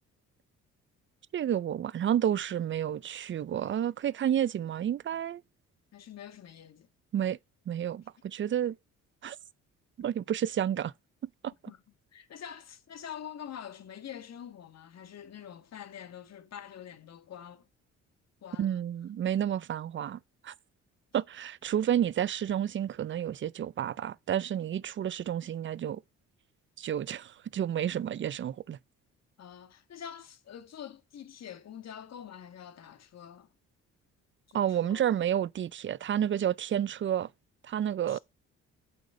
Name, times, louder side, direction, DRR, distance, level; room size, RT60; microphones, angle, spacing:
voice 1, 1.3-5.4 7.1-7.4 7.7-8.8 9.2-9.4 10.0-10.9 11.2-11.5 18.6-20.5 21.1-26.0 26.8-28.8 34.5-37.3 37.6-38.2, right 10 dB, 40° right, 0.5 m, -30 dB
voice 2, 5.9-6.9 11.7-11.8 12.1-17.7 18.4-18.8 29.4-33.5 34.5-35.2 38.1-38.2, left 9 dB, 60° left, 1.9 m, -45 dB
8.3 x 8.0 x 3.8 m
cardioid pair, 90°, 30 cm